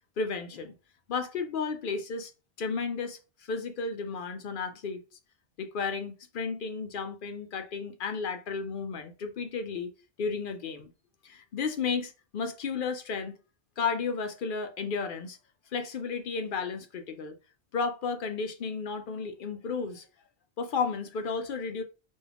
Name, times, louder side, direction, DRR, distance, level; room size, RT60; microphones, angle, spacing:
voice 1, 0.2-0.7 1.1-2.3 2.6-5.0 5.6-9.9 10.2-10.9 11.2-13.3 13.8-15.4 15.7-17.4 17.7-20.1 20.6-21.8, left 5 dB, 60° left, 0.7 m, -33 dB
4.2 x 2.4 x 3.4 m
omnidirectional pair, 1.1 m